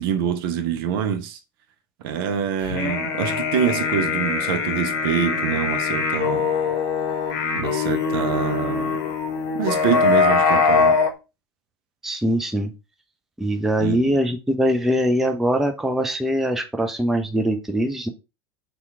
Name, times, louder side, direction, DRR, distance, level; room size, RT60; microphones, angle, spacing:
voice 1, 0.0-1.4 2.0-6.5 7.5-9.0 9.6-11.0 13.8-14.2, right 8 dB, 55° right, 0.5 m, -25 dB
sound 1, 2.6-11.1, left 5 dB, 55° left, 0.8 m, -22 dB
voice 2, 12.0-12.7 13.4-18.1, equal, ahead, 0.4 m, -22 dB
2.8 x 2.3 x 3.5 m
figure-of-eight pair, 85°, 14 cm